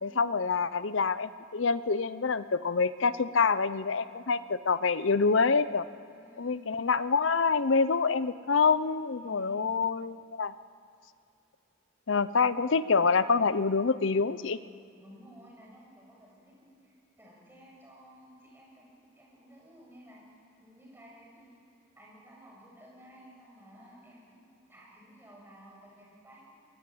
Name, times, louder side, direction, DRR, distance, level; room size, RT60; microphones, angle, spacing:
voice 1, 0.0-5.9 6.4-10.5 12.1-14.6, left 4 dB, 75° left, 15 dB, 0.7 m, -26 dB
voice 2, 6.1-6.7 9.2-9.8 15.0-21.6 21.9-26.7, equal, 10° right, -4 dB, 6.9 m, -54 dB
22.5 x 21.0 x 8.6 m, 2.5 s
head